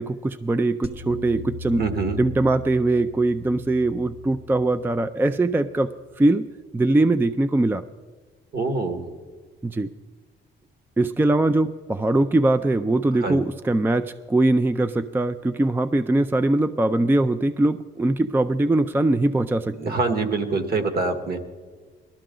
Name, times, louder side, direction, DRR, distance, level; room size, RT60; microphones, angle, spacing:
voice 1, 0.0-1.8 2.2-5.9 6.2-6.4 6.7-7.8 9.6-9.9 11.0-20.0, right 2 dB, 10° right, 11 dB, 0.4 m, -21 dB
sound 1, 0.8-6.1, left 2 dB, 30° right, 1.2 m, -39 dB
voice 2, 1.8-2.2 8.5-9.0 13.2-13.4 19.8-21.4, right 3 dB, 50° right, 7 dB, 1.8 m, -25 dB
18.5 x 13.0 x 3.8 m, 1.4 s
cardioid pair, 90°, 20 cm